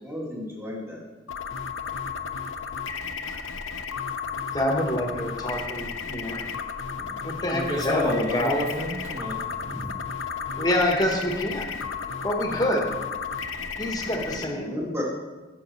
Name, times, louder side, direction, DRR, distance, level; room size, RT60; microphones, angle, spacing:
voice 1, 0.0-1.0 14.1-15.0, left 1 dB, 10° right, -3 dB, 1.7 m, -34 dB
sound 1, 1.3-14.4, left 5 dB, 80° left, 0.6 m, -33 dB
voice 2, 4.5-6.4 7.2-8.6 10.6-11.7 12.2-12.9 13.8-14.8, left 1 dB, 20° left, 2 dB, 1.2 m, -26 dB
voice 3, 7.0-10.0, equal, 35° right, -1 dB, 1.7 m, -31 dB
10.0 x 7.3 x 4.1 m, 1.2 s
head